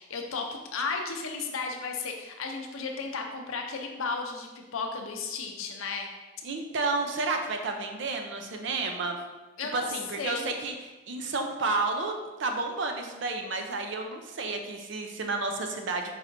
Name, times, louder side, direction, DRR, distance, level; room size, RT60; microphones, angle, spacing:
voice 1, 0.0-6.1 9.6-10.5, left 4 dB, 80° left, 2 dB, 0.6 m, -34 dB
voice 2, 6.4-9.2 9.7-10.7 11.1-12.1 12.4-16.1, right 3 dB, 60° right, 4 dB, 0.5 m, -31 dB
4.6 x 4.2 x 2.6 m, 1.2 s
head